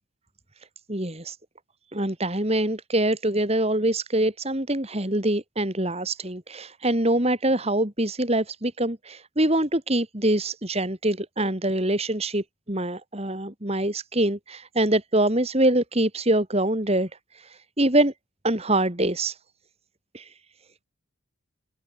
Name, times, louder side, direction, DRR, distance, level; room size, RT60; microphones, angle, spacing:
voice 1, 0.9-1.4 1.9-18.1 18.4-19.4 20.1-20.3, right 1 dB, 30° right, 2.7 m, -24 dB
head